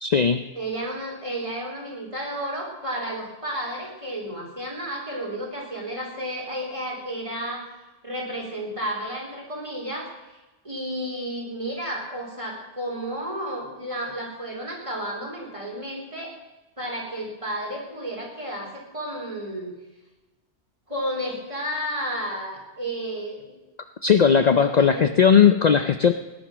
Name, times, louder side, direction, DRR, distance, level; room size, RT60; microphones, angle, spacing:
voice 1, 0.0-0.4 24.0-26.1, left 7 dB, 45° left, 9 dB, 0.6 m, -17 dB
voice 2, 0.6-7.6 8.0-10.4 10.6-16.3 16.8-19.7 20.9-23.6 24.5-25.2, equal, 30° right, -2 dB, 3.9 m, -32 dB
18.5 x 10.5 x 6.1 m, 1.1 s
omnidirectional pair, 1.1 m